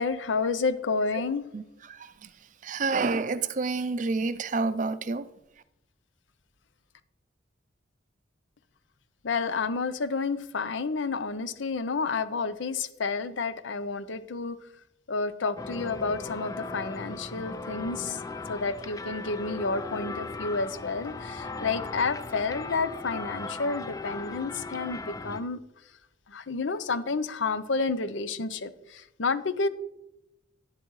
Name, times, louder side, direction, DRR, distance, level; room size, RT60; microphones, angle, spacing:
voice 1, 0.0-1.4 9.2-14.6 15.1-18.2 18.5-25.6 26.3-29.7, left 4 dB, 80° left, 0.6 m, -30 dB
voice 2, 1.5-5.3, right 4 dB, 40° right, 0.4 m, -29 dB
sound 1, 15.6-25.4, left 3 dB, 20° left, 0.4 m, -38 dB
11.0 x 9.8 x 3.1 m
head